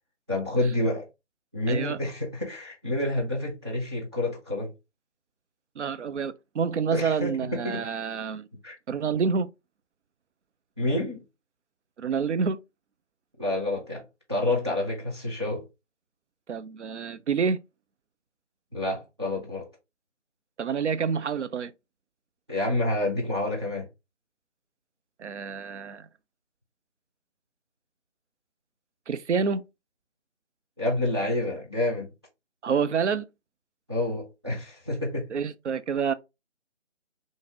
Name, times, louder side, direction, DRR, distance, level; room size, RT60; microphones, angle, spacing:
voice 1, 0.3-1.1 1.5-4.7 6.9-7.8 8.6-8.8 10.8-11.2 13.4-14.0 14.3-15.7 18.7-19.7 22.5-23.9 30.8-32.1 33.9-35.3, left 1 dB, 25° right, 0.5 m, -28 dB
voice 2, 1.7-2.0 5.8-8.5 8.9-9.5 12.0-12.6 16.5-17.6 20.6-21.7 25.2-26.1 29.1-29.6 32.6-33.3 35.3-36.1, right 6 dB, 75° right, 0.5 m, -28 dB
3.8 x 2.5 x 2.8 m
figure-of-eight pair, 155°, 36 cm